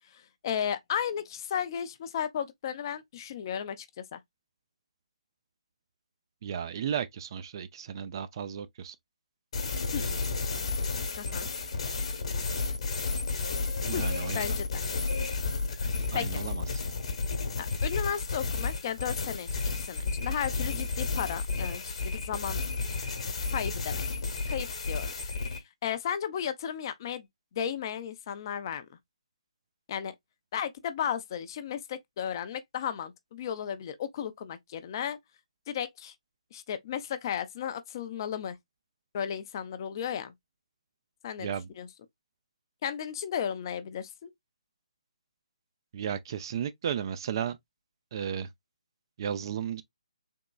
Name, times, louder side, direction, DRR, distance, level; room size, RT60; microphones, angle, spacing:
voice 1, 0.1-4.2 9.9-10.1 11.2-11.5 13.9-14.1 14.3-14.8 16.1-16.4 17.6-22.6 23.5-24.0 24.5-27.3 27.5-29.0 29.9-30.1 30.5-35.2 35.7-36.1 36.5-38.6 39.1-40.3 41.2-41.5 41.8-41.9 42.8-44.3, left 8 dB, 35° left, 0.5 m, -34 dB
voice 2, 6.4-9.0 13.8-14.6 16.1-16.8 41.4-41.7 45.9-47.6 48.1-48.5 49.2-49.8, right 8 dB, 40° right, 0.4 m, -34 dB
sound 1, 9.5-25.6, left 4 dB, 55° left, 1.1 m, -32 dB
3.6 x 2.9 x 2.3 m
figure-of-eight pair, 145°, 4 cm